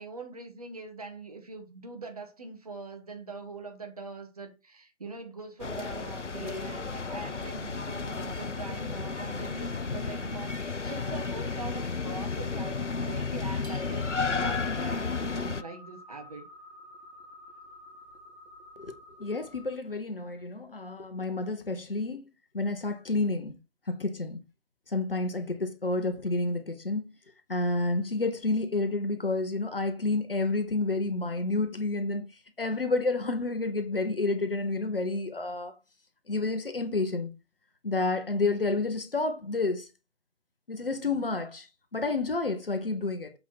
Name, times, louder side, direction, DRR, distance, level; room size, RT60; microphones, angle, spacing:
voice 1, 0.0-16.5, right 4 dB, 30° right, 1.6 m, -42 dB
sound 1, 5.6-15.6, left 4 dB, 90° left, 0.8 m, -33 dB
sound 2, 13.6-19.8, left 1 dB, 65° right, 2.3 m, -51 dB
voice 2, 19.2-22.2 22.5-23.5 23.9-24.4 24.9-27.0 27.5-32.3 32.6-35.7 36.3-37.3 37.8-39.9 40.7-41.7 41.9-43.3, left 3 dB, 50° left, 1.4 m, -29 dB
7.7 x 4.1 x 4.3 m
figure-of-eight pair, 155°, 35 cm